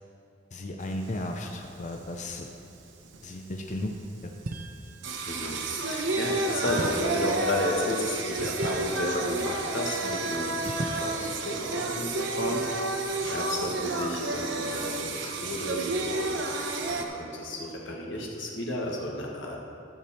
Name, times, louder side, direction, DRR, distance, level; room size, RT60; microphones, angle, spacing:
voice 1, 0.5-2.5 3.2-3.9 4.2-4.4, left 1 dB, 40° left, 2 dB, 0.6 m, -35 dB
Singing, 0.8-17.0, right 2 dB, 70° right, 0.9 m, -31 dB
sound 1, 4.4-5.1 6.7-10.1 10.6-11.0, right 2 dB, 50° right, 0.6 m, -39 dB
voice 2, 5.3-12.8 13.3-16.3 16.8-19.6, left 1 dB, 85° left, -2 dB, 1.7 m, -32 dB
12.5 x 7.0 x 4.4 m, 2.7 s
head